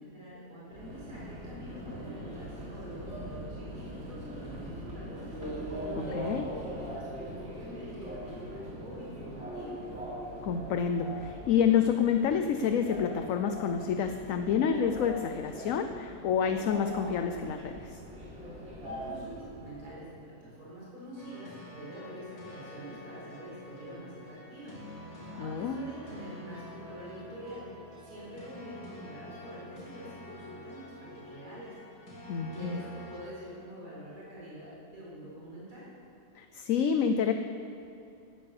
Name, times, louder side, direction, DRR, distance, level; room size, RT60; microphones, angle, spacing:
voice 1, 0.1-5.4 5.7-6.2 6.5-6.6 6.9-9.8 18.8-31.8 32.4-35.9, right 1 dB, 85° right, -8 dB, 5.2 m, -46 dB
Subway metro underground, 0.7-20.0, equal, 45° right, 3.6 m, -41 dB
voice 2, 6.0-6.5 10.4-18.0 25.4-25.8 32.3-32.8 36.3-37.3, left 7 dB, 65° left, 7 dB, 1.0 m, -28 dB
sound 1, 21.2-33.2, left 1 dB, 85° left, 4.0 m, -47 dB
18.0 x 10.5 x 6.8 m, 2.6 s
omnidirectional pair, 1.6 m